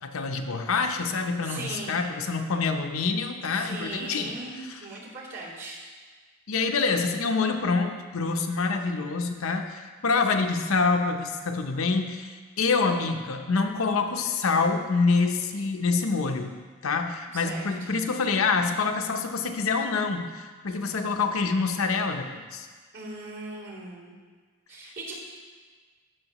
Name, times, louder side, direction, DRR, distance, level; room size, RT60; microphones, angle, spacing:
voice 1, 0.0-4.3 4.7-4.8 6.5-16.6 16.8-22.7, left 4 dB, 80° left, 5 dB, 0.7 m, -26 dB
voice 2, 1.4-2.0 3.5-5.8 17.3-17.9 22.9-24.2 24.7-25.2, right 2 dB, 60° right, -8 dB, 3.0 m, -39 dB
14.5 x 6.4 x 3.0 m, 1.5 s
head